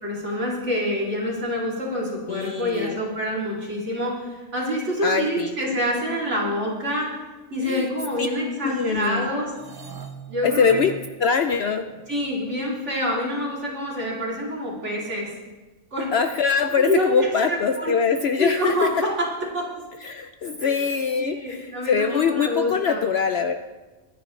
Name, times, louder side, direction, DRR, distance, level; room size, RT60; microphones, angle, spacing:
voice 1, 0.0-7.1 7.5-9.5 10.3-10.8 12.1-15.3 15.9-16.1 16.8-17.9 18.4-19.3 19.5-19.7 20.6-20.8 21.2-23.0, equal, 55° right, -4 dB, 3.2 m, -26 dB
voice 2, 2.3-3.0 5.0-5.5 7.6-7.9 8.2-8.3 8.6-9.3 10.4-10.9 11.2-11.9 16.1-18.9 20.0-23.5, left 6 dB, 60° left, 8 dB, 0.7 m, -23 dB
sound 1, 9.5-12.6, right 5 dB, 30° right, 0.4 m, -41 dB
23.5 x 9.9 x 3.2 m, 1.2 s
omnidirectional pair, 1.4 m